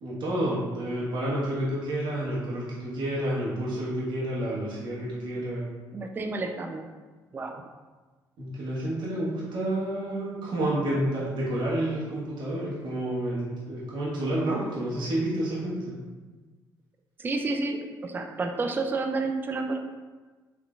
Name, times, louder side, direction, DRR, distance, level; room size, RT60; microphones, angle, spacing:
voice 1, 0.0-5.7 8.4-15.9, right 1 dB, 70° right, -7 dB, 1.3 m, -29 dB
voice 2, 5.9-6.8 7.3-7.6 17.2-19.8, right 3 dB, 25° right, 4 dB, 0.3 m, -30 dB
3.7 x 3.3 x 2.4 m, 1.3 s
supercardioid pair, 80°, 8 cm